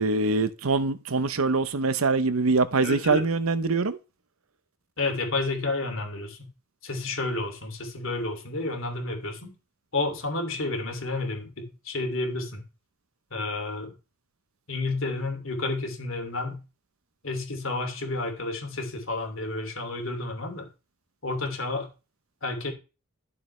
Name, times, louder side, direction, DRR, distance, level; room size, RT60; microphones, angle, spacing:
voice 1, 0.0-4.0, right 3 dB, 90° right, 0.8 m, -24 dB
voice 2, 2.8-3.2 5.0-6.4 6.8-9.6 9.9-12.6 13.3-13.9 14.7-16.6 17.2-20.7 21.2-21.9 22.4-22.7, left 2 dB, 70° left, 2.7 m, -30 dB
12.5 x 6.9 x 3.3 m
head